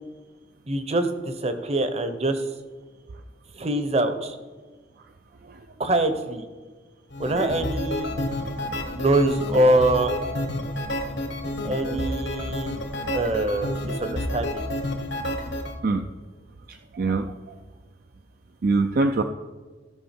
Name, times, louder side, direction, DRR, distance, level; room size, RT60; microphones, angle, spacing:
voice 1, 0.7-2.4 3.6-4.4 5.8-6.4 7.2-8.1 8.9-10.1 11.6-12.8 13.1-14.6, right 1 dB, 35° right, 8 dB, 0.9 m, -24 dB
sound 1, 7.1-15.7, left 1 dB, 80° left, 1.2 m, -30 dB
voice 2, 16.7-17.3 18.6-19.2, right 3 dB, 55° right, 6 dB, 0.5 m, -23 dB
15.5 x 5.5 x 4.4 m, 1.4 s
head